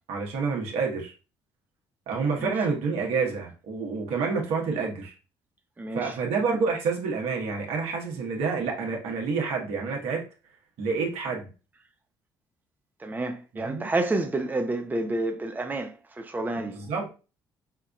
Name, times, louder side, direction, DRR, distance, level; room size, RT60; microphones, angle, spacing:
voice 1, 0.1-1.1 2.1-5.1 5.9-10.2 10.8-11.5 13.5-13.9 16.6-17.1, right 4 dB, 75° right, 1.2 m, -28 dB
voice 2, 5.8-6.1 13.0-16.8, right 2 dB, 15° right, 0.7 m, -29 dB
5.8 x 2.4 x 2.3 m
hypercardioid pair, 60°, 11 cm